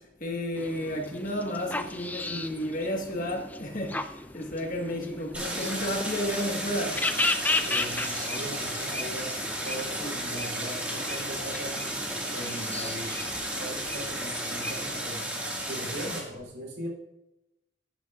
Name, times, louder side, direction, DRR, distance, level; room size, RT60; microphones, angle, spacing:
voice 1, 0.2-7.0, equal, 45° left, 1.7 m, -32 dB
sound 1, 0.6-15.0, left 2 dB, 10° left, 0.4 m, -35 dB
Stream, 5.3-16.2, right 1 dB, 10° right, 2.1 m, -33 dB
voice 2, 7.6-11.9 12.3-13.2 13.6-15.3 15.6-16.9, right 1 dB, 70° right, 4.0 m, -39 dB
17.0 x 9.1 x 2.5 m
head